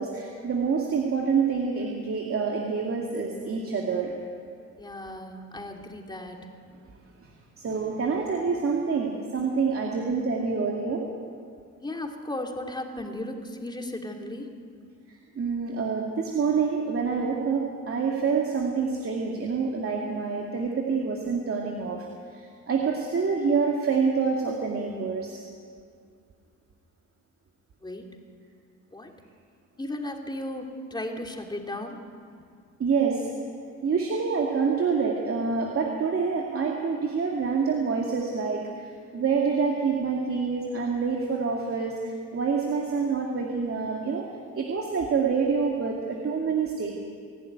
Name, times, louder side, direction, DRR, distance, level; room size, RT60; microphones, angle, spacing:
voice 1, 0.0-4.1 7.2-7.3 7.6-11.0 15.4-22.1 22.3-25.4 32.8-33.3 33.8-38.8 39.1-44.3 44.5-46.9, right 5 dB, 50° right, 0 dB, 2.4 m, -27 dB
voice 2, 4.8-6.5 11.8-14.5 27.8-28.1 28.9-29.1 29.8-32.0, left 1 dB, 15° left, 2 dB, 2.8 m, -35 dB
25.5 x 11.5 x 9.4 m, 2.3 s
cardioid pair, 90°, 30 cm